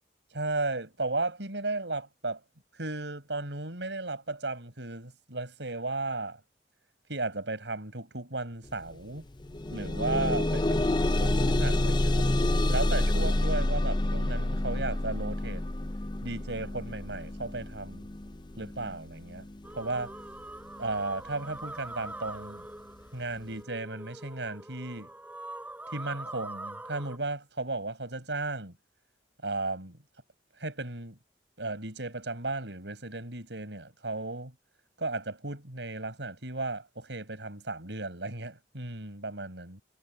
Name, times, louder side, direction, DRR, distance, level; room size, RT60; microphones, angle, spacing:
voice 1, 0.3-2.4 2.7-6.4 7.1-9.3 9.7-12.3 12.7-15.7 16.2-18.1 18.6-19.4 19.7-20.1 20.8-22.7 23.1-25.1 25.9-28.8 29.4-30.0 30.6-31.2 31.6-34.5 35.0-39.8, right 2 dB, 85° right, 5.6 m, -35 dB
sound 1, 8.7-8.8 9.2-20.2 21.0-21.1 21.6-21.7, left 1 dB, 25° left, 0.6 m, -28 dB
sound 2, 19.6-27.2, right 2 dB, 10° right, 6.0 m, -43 dB
head